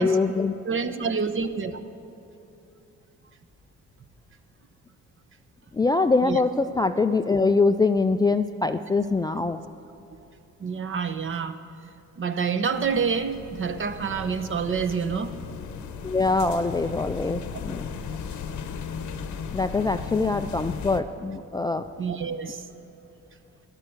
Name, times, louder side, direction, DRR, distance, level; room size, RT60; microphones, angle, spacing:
voice 1, 0.0-0.5 5.7-9.6 16.0-17.9 19.5-21.8, left 3 dB, 15° left, 8 dB, 0.3 m, -23 dB
voice 2, 0.6-1.8 6.2-6.4 10.6-11.6 12.2-15.3 22.0-22.6, right 6 dB, 45° right, 9 dB, 0.9 m, -27 dB
sound 1, 12.7-21.0, left 6 dB, 75° left, 0.9 m, -36 dB
13.0 x 11.5 x 6.6 m, 2.9 s
cardioid pair, 90°, 30 cm